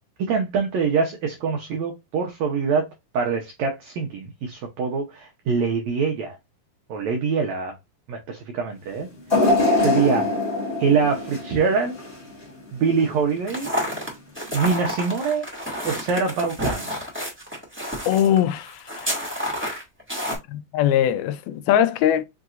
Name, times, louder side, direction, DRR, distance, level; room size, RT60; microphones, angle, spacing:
voice 1, 0.2-2.8 3.1-6.4 6.9-7.8 8.1-9.1 9.8-10.3 10.8-12.0 12.7-13.7 14.5-15.5 15.8-16.9, right 5 dB, 90° right, 1.5 m, -24 dB
sound 1, 9.3-12.4 12.9-13.0 14.0-14.1, left 2 dB, 70° left, 0.5 m, -23 dB
sound 2, 13.4-20.4, equal, 10° right, 0.7 m, -30 dB
voice 2, 18.1-19.1 20.5-22.3, left 10 dB, 90° left, 2.5 m, -21 dB
5.9 x 2.8 x 2.4 m
omnidirectional pair, 4.2 m